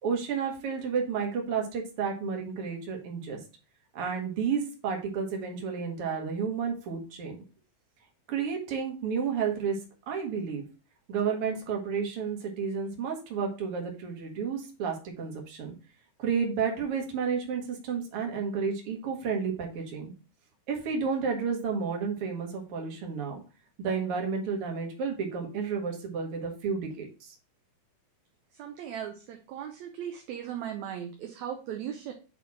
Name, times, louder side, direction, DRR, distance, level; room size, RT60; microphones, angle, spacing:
voice 1, 0.0-3.4 3.9-7.4 8.3-9.8 10.1-10.6 11.1-15.7 16.2-20.1 20.7-23.4 23.8-27.3, right 6 dB, 50° right, 1 dB, 2.2 m, -31 dB
voice 2, 28.5-32.1, right 9 dB, 75° right, 4 dB, 1.9 m, -38 dB
8.7 x 3.5 x 4.2 m, 0.35 s
omnidirectional pair, 3.6 m